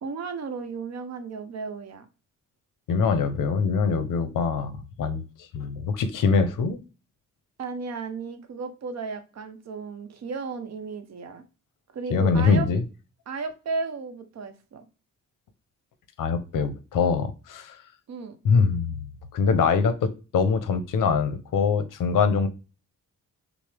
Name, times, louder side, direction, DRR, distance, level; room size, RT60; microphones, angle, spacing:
voice 1, 0.0-2.1 7.6-11.4 11.9-12.7 13.3-14.9 18.1-18.4, right 4 dB, 55° right, 0.7 m, -34 dB
voice 2, 2.9-5.2 5.5-6.8 12.1-12.8 16.2-17.8 18.4-19.0 19.3-22.5, left 5 dB, 80° left, 0.7 m, -23 dB
6.1 x 2.1 x 3.3 m
wide cardioid pair, 125°, 32 cm